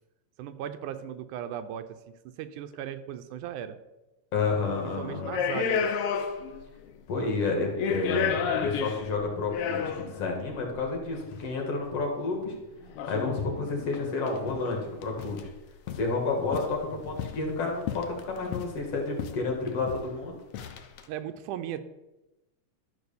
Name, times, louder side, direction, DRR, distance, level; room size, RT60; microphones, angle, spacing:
voice 1, 0.4-3.8 5.0-5.9 21.1-21.8, right 10 dB, 80° right, 10 dB, 2.2 m, -37 dB
voice 2, 4.3-5.3 7.1-12.5 13.1-15.5 15.9-20.4, left 3 dB, 55° left, 1 dB, 2.7 m, -30 dB
sound 1, 4.5-4.7 5.2-6.6 6.9-7.0 7.6-10.2 11.2-11.3 13.0-13.4 13.9-14.0 14.3-14.7 15.0-15.5 15.9-16.1 16.5-17.5 17.9-18.8 19.2-19.4 19.7-20.1 20.5-21.0, left 7 dB, 70° left, 1.4 m, -31 dB
Motorcycle, 12.1-15.4, right 1 dB, 35° right, 3.7 m, -49 dB
12.0 x 4.9 x 6.9 m, 1.0 s
omnidirectional pair, 3.6 m